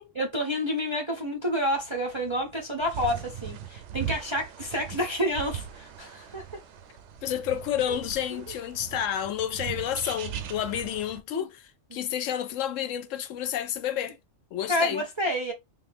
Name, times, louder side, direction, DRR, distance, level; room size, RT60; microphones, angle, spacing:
voice 1, 0.2-6.4 7.9-8.0 8.3-8.4 11.3-11.5 11.9-12.0 14.7-15.5, equal, 35° right, 0.4 m, -29 dB
sound 1, 1.7-11.2, right 9 dB, 70° right, 0.9 m, -40 dB
voice 2, 7.2-14.2 14.5-15.0, left 10 dB, 80° left, 0.9 m, -30 dB
3.6 x 2.4 x 3.4 m
omnidirectional pair, 1.3 m